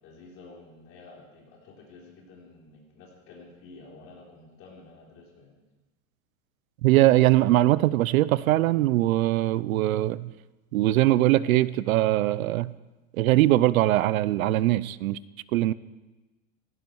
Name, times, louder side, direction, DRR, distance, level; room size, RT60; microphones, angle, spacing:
voice 1, 0.0-5.5, left 3 dB, 30° left, -2 dB, 3.9 m, -50 dB
voice 2, 6.8-10.3 10.7-12.7 13.2-15.2 15.5-15.7, right 16 dB, 80° right, 19 dB, 0.6 m, -21 dB
17.5 x 16.0 x 4.6 m, 1.1 s
supercardioid pair, 175°, 41 cm